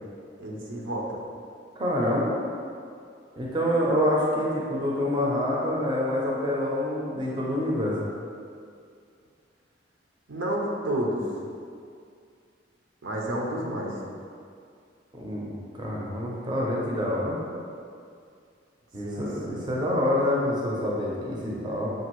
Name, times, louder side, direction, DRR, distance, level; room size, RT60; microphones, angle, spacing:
voice 1, 0.4-1.1 10.3-11.2 13.0-13.9 19.0-19.7, right 1 dB, 85° right, -2 dB, 0.7 m, -30 dB
voice 2, 1.8-2.3 3.4-8.1 15.1-17.4 18.9-21.9, left 1 dB, 25° right, -4 dB, 0.6 m, -27 dB
6.0 x 2.5 x 3.0 m, 2.3 s
head